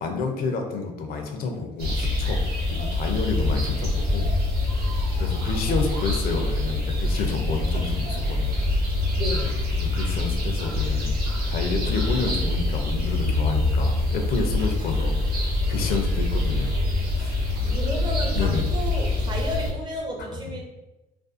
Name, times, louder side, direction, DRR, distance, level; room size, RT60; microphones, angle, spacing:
voice 1, 0.0-2.4 2.7-4.3 4.7-4.8 5.2-8.7 9.8-16.8 17.2-17.4 17.7-17.8 18.3-18.7, left 4 dB, 60° left, 3 dB, 0.5 m, -30 dB
sound 1, 1.8-19.7, left 2 dB, 65° right, 0.8 m, -25 dB
voice 2, 9.1-9.6 14.8-15.1 17.6-20.6, equal, 25° right, 0 dB, 0.6 m, -33 dB
2.5 x 2.3 x 2.4 m, 1.0 s
cardioid pair, 110°, 17 cm